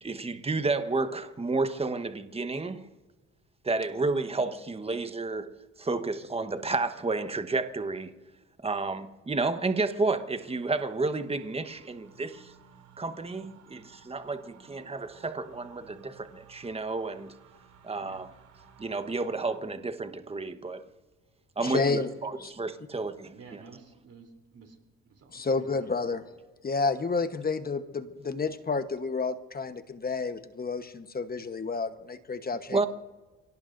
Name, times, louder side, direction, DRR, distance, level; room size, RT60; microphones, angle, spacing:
voice 1, 0.0-2.9 3.6-8.1 8.6-12.5 13.0-17.3 17.8-18.3 18.8-20.8 21.6-23.6 32.7-32.9, right 3 dB, 20° right, 1.2 m, -31 dB
sound 1, 9.7-19.6, right 6 dB, 85° right, 2.6 m, -57 dB
voice 2, 21.6-22.1 22.4-22.5 25.3-26.2 26.6-32.8, left 4 dB, 30° left, 1.1 m, -30 dB
voice 3, 23.3-24.8 25.0-26.2, right 5 dB, 50° right, 3.3 m, -51 dB
29.5 x 18.0 x 2.6 m
cardioid pair, 90°, 30 cm